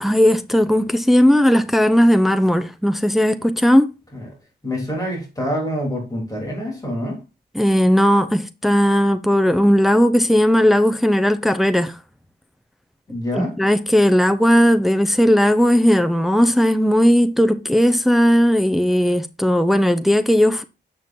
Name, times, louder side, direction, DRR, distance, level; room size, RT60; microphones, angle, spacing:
voice 1, 0.0-3.9 7.5-12.0 13.3-20.6, equal, ahead, 0.5 m, -16 dB
voice 2, 4.6-7.2 13.1-13.5, equal, 20° left, 3.4 m, -26 dB
7.6 x 6.8 x 2.7 m
wide cardioid pair, 120°, 18 cm